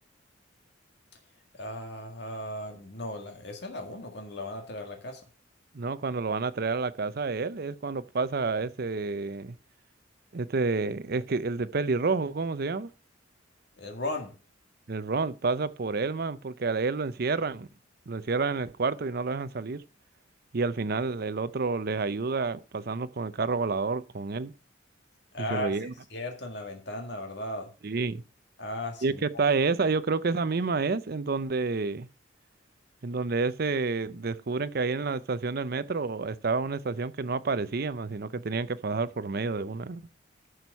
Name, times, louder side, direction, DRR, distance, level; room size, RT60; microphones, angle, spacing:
voice 1, 1.6-5.2 13.8-14.3 25.3-25.7 26.1-27.7 28.6-29.4, left 1 dB, 60° left, 1.9 m, -36 dB
voice 2, 5.7-9.6 10.3-12.9 14.9-17.7 18.1-19.8 20.5-24.5 25.4-25.9 27.8-28.2 29.0-32.1 33.0-40.0, right 4 dB, 50° right, 0.6 m, -29 dB
11.5 x 6.3 x 5.4 m
head